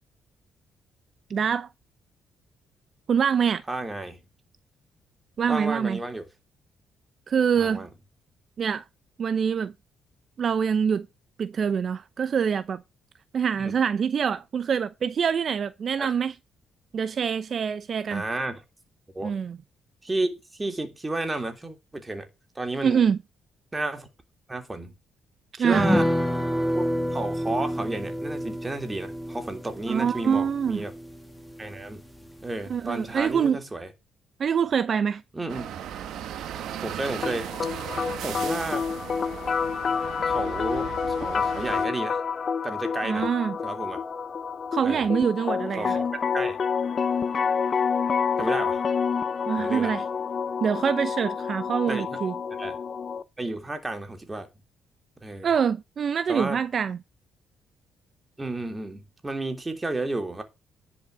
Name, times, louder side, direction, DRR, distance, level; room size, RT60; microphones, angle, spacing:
voice 1, 1.3-1.7 3.1-3.6 5.4-6.0 7.3-7.9 8.6-8.8 9.2-9.7 10.4-11.1 11.4-12.8 13.3-16.3 16.9-18.2 19.2-19.6 22.8-23.2 25.6-25.9 29.9-30.8 32.7-33.6 34.4-35.2 43.0-43.6 44.7-46.0 49.5-50.0 50.6-52.3 55.4-57.0, right 7 dB, 50° right, 0.7 m, -25 dB
voice 2, 3.7-4.2 5.5-6.3 7.5-7.9 13.6-13.7 16.0-16.1 18.1-18.6 19.1-19.3 20.0-22.3 22.5-23.1 23.7-24.1 24.5-24.9 25.6-26.1 26.7-30.9 31.6-32.0 32.4-33.9 35.3-35.7 36.7-37.5 38.2-38.9 40.2-42.2 42.6-43.3 43.6-44.0 44.8-45.1 45.7-46.0 46.3-46.6 48.4-48.8 49.6-49.9 51.9-52.2 52.6-52.8 53.4-54.5 55.2-55.5 56.3-56.6 58.4-60.4, right 2 dB, 20° right, 3.1 m, -32 dB
sound 1, 25.7-32.5 32.8-32.9 33.2-33.4, equal, 5° left, 2.8 m, -29 dB
sound 2, 35.5-41.9, right 10 dB, 80° right, 1.8 m, -37 dB
sound 3, 37.2-53.2, left 6 dB, 45° left, 1.0 m, -28 dB
11.0 x 5.7 x 6.3 m
cardioid pair, 90°, 0 cm